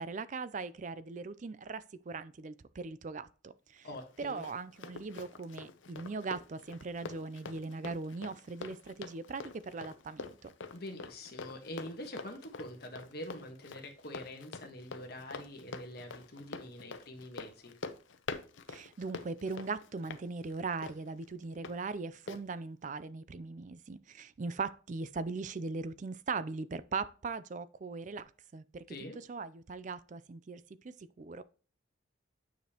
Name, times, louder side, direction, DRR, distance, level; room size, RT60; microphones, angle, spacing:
voice 1, 0.0-3.9 4.2-10.5 18.7-28.8 29.3-31.4, right 4 dB, 40° right, 0.4 m, -40 dB
voice 2, 3.8-4.4 10.7-17.7 28.9-29.2, left 1 dB, 50° left, 1.4 m, -45 dB
Run, 3.9-21.8 22.3-22.4, left 4 dB, 70° left, 0.7 m, -46 dB
9.2 x 5.0 x 2.9 m
head